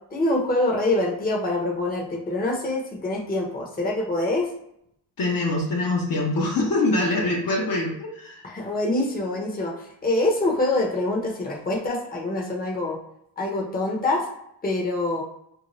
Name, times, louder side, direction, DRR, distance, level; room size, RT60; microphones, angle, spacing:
voice 1, 0.1-4.5 8.4-13.0 13.4-14.2 14.6-15.2, left 2 dB, 20° left, -2 dB, 0.8 m, -25 dB
voice 2, 5.2-8.4, left 2 dB, 45° left, -2 dB, 0.8 m, -24 dB
2.7 x 2.2 x 3.1 m, 0.76 s
supercardioid pair, 70°, 47 cm